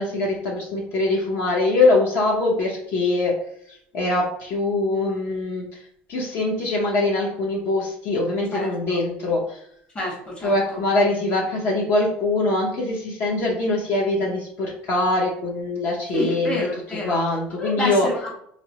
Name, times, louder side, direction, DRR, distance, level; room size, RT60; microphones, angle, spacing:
voice 1, 0.0-3.3 3.7-5.6 6.1-9.6 10.4-16.7 17.0-18.1, left 2 dB, 50° left, -3 dB, 0.7 m, -23 dB
voice 2, 9.9-10.5 16.1-17.2 17.6-18.3, left 2 dB, 25° left, -2 dB, 1.1 m, -28 dB
4.1 x 2.0 x 2.8 m, 0.70 s
supercardioid pair, 120°, 5 cm